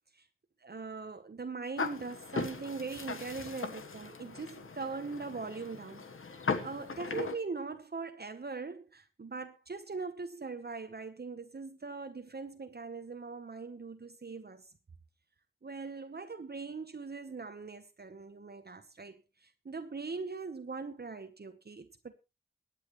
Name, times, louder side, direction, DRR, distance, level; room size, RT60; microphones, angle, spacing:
voice 1, 0.6-6.0 6.6-14.7 15.6-19.2 19.6-22.1, right 4 dB, 50° right, 1.0 m, -41 dB
sound 1, 1.8-7.3, left 4 dB, 85° left, 1.3 m, -38 dB
22.0 x 8.9 x 3.1 m
wide cardioid pair, 65°, 21 cm